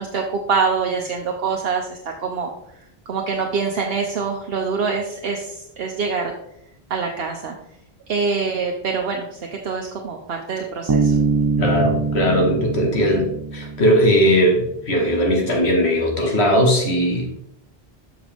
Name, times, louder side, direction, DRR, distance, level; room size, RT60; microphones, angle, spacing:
voice 1, 0.0-2.5 3.1-6.3 6.9-7.5 8.1-11.2, right 5 dB, 70° right, 1 dB, 1.0 m, -25 dB
Bass guitar, 10.9-14.3, right 4 dB, 30° right, 0.4 m, -23 dB
voice 2, 11.6-17.4, equal, 85° left, 1 dB, 1.9 m, -19 dB
7.4 x 6.1 x 3.5 m, 0.75 s
omnidirectional pair, 1.1 m